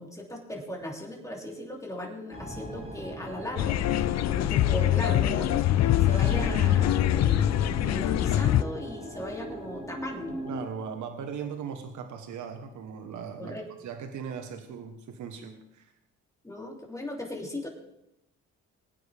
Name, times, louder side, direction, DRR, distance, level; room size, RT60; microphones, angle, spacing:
voice 1, 0.0-3.9 4.3-5.6 6.0-10.4 13.4-13.6 16.4-17.7, left 1 dB, 10° left, -1 dB, 3.1 m, -37 dB
sound 1, 2.3-10.7, right 1 dB, 20° right, 3.7 m, -38 dB
sound 2, 3.6-8.6, left 13 dB, 60° left, 0.5 m, -24 dB
voice 2, 10.5-15.9, right 7 dB, 75° right, 5 dB, 1.3 m, -39 dB
20.5 x 9.3 x 3.5 m, 0.85 s
cardioid pair, 90°, 30 cm